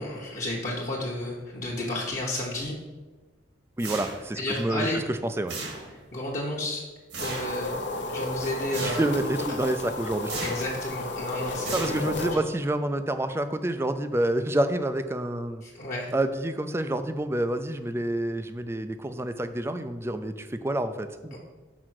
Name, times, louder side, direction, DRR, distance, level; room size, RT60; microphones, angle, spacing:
voice 1, 0.0-2.7 4.3-5.0 6.1-6.8 7.2-9.0 10.4-12.4 15.6-16.1 21.3-21.4, left 1 dB, 40° left, -5 dB, 1.1 m, -32 dB
voice 2, 3.8-5.6 8.8-10.3 11.7-15.6 16.1-21.4, right 1 dB, 15° right, 10 dB, 0.4 m, -28 dB
sound 1, 3.8-4.5 5.5-6.1 7.1-7.6 8.7-9.2 10.2-10.8 11.6-12.3, right 3 dB, 80° right, 2.0 m, -36 dB
sound 2, 7.2-12.4, left 2 dB, 75° left, 0.9 m, -33 dB
6.0 x 4.8 x 6.3 m, 1.3 s
head